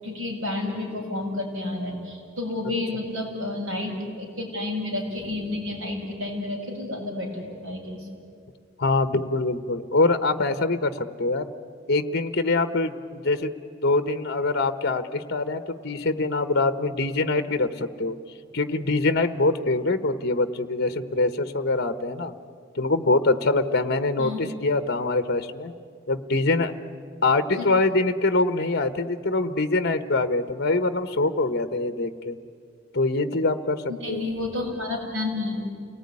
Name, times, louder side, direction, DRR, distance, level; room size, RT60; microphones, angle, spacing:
voice 1, 0.0-8.1 24.2-24.4 27.6-27.7 33.9-35.7, left 2 dB, 90° right, -2 dB, 7.3 m, -30 dB
voice 2, 8.8-11.5 11.9-13.5 13.8-18.2 18.5-22.3 22.7-25.7 26.1-26.7 27.2-32.4 32.9-33.8 34.1-34.2, left 2 dB, 55° left, 11 dB, 1.0 m, -24 dB
29.0 x 19.0 x 9.7 m, 2.3 s
head